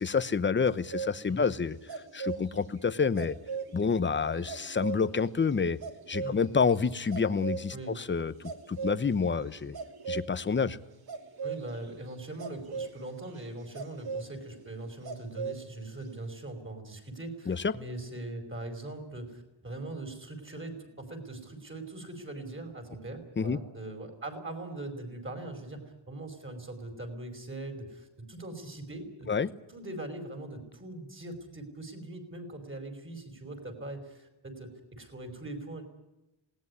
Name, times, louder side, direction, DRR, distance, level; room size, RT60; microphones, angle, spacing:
voice 1, 0.0-3.4 3.7-5.8 6.1-9.8 10.1-10.8 17.5-17.7 23.4-23.6 29.3-29.5, left 5 dB, 25° left, 15 dB, 0.9 m, -28 dB
sound 1, 0.6-10.3 11.1-15.6 15.9-16.1, right 6 dB, 50° right, 3.0 m, -39 dB
voice 2, 11.4-29.3 29.7-35.8, right 2 dB, 25° right, 6 dB, 5.3 m, -41 dB
20.0 x 18.5 x 9.8 m, 0.93 s
wide cardioid pair, 135°, 48 cm